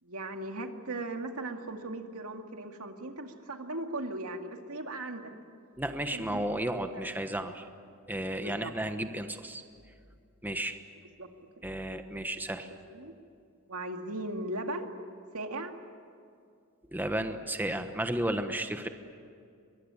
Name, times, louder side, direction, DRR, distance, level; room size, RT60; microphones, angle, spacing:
voice 1, 0.0-5.3 6.1-6.8 8.4-8.7 11.2-11.3 12.7-13.1 13.7-14.9 15.3-15.7, right 2 dB, 80° right, 4 dB, 2.2 m, -38 dB
voice 2, 5.8-7.6 8.1-9.6 10.4-10.8 11.6-12.7 16.9-18.9, right 1 dB, 10° right, 7 dB, 1.2 m, -33 dB
23.5 x 22.5 x 9.7 m, 2.4 s
head